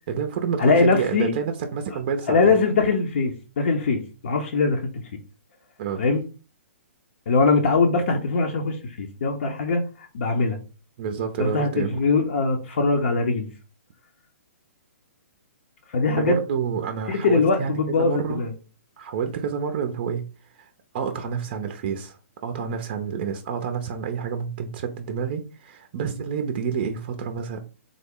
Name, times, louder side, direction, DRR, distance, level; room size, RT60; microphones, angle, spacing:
voice 1, 0.1-2.6 5.8-6.0 11.0-12.0 16.2-18.4 19.0-20.2 20.5-22.2 22.4-27.6, right 6 dB, 45° right, 6 dB, 0.5 m, -29 dB
voice 2, 0.6-1.3 2.3-5.2 6.0-6.2 7.3-10.6 11.4-13.5 15.9-16.4 17.1-18.5, left 4 dB, 65° left, 2 dB, 0.6 m, -22 dB
3.6 x 2.0 x 3.6 m, 0.34 s
hypercardioid pair, 140°, 7 cm